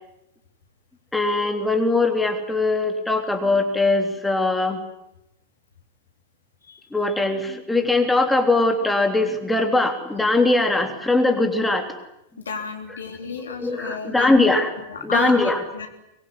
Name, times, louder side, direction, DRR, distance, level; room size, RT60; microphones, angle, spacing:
voice 1, 1.1-4.8 6.9-11.9 12.9-13.0 13.3-14.7 15.0-15.6, left 2 dB, 5° left, 4 dB, 3.3 m, -21 dB
voice 2, 12.5-14.5 14.9-15.9, left 5 dB, 70° left, 5 dB, 3.8 m, -31 dB
24.0 x 22.0 x 9.9 m, 0.86 s
figure-of-eight pair, 90°, 0 cm